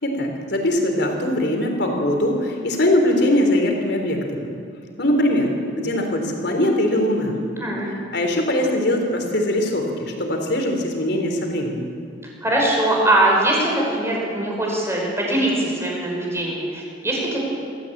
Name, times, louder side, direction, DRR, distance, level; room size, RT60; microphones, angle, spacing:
voice 1, 0.0-4.5 5.0-7.4 8.1-11.9, left 1 dB, 60° left, 2 dB, 4.0 m, -21 dB
voice 2, 7.6-7.9 12.4-17.4, right 1 dB, 15° right, -2 dB, 5.8 m, -21 dB
24.0 x 14.5 x 8.8 m, 2.5 s
head